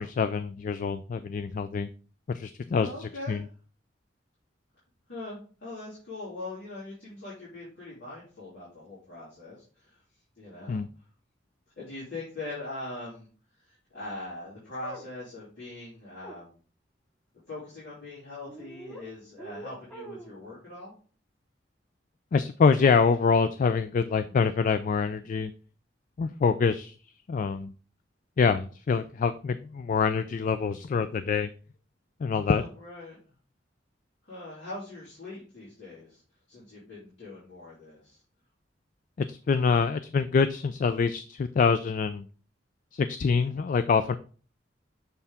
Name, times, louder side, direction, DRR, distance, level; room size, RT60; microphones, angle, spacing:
voice 1, 0.0-1.9 2.3-3.4 10.7-10.9 22.3-25.5 26.2-26.9 27.3-27.7 28.4-31.5 32.2-32.6 39.2-42.3 42.9-44.2, left 5 dB, 45° left, 11 dB, 0.3 m, -25 dB
voice 2, 2.7-3.4 5.1-10.0 10.4-10.8 11.8-13.3 13.6-16.6 17.5-20.9 32.4-33.2 34.2-36.2 36.5-38.2, left 2 dB, 75° left, -9 dB, 3.2 m, -41 dB
sound 1, 14.8-15.1 16.2-16.4 18.5-19.0 19.4-20.4, right 1 dB, 5° left, 0.9 m, -43 dB
6.8 x 4.5 x 3.5 m, 0.39 s
head